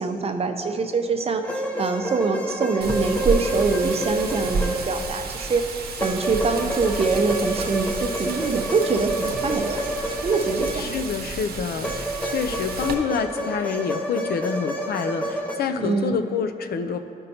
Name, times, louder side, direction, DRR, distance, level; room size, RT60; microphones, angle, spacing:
voice 1, 0.0-9.8 10.2-11.0 15.8-16.1, right 4 dB, 40° right, 6 dB, 0.6 m, -24 dB
sound 1, 1.4-5.3 6.0-11.2 11.8-15.6, equal, 10° left, 0.7 m, -29 dB
Wind, 2.8-12.9, right 4 dB, 80° right, 0.7 m, -31 dB
voice 2, 10.7-17.0, left 6 dB, 80° left, 8 dB, 0.5 m, -27 dB
12.5 x 5.4 x 2.8 m, 2.7 s
cardioid pair, 105°, 16 cm